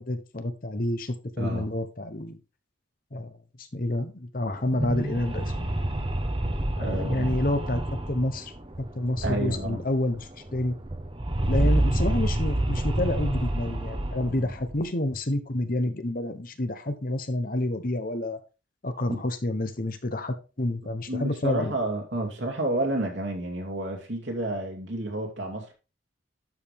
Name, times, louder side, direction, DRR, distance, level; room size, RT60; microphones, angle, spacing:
voice 1, 0.0-2.4 3.1-3.3 3.6-5.7 6.8-8.5 8.9-10.8 11.5-18.4 18.8-21.7, left 1 dB, 45° left, 1.0 m, -29 dB
voice 2, 1.4-1.7 6.8-7.4 9.2-9.8 14.4-14.5 19.1-19.2 21.1-25.7, right 1 dB, 65° right, 2.6 m, -30 dB
sound 1, 4.5-9.8 10.1-10.2 10.5-14.8, right 1 dB, 25° right, 1.0 m, -28 dB
12.0 x 5.1 x 3.5 m
head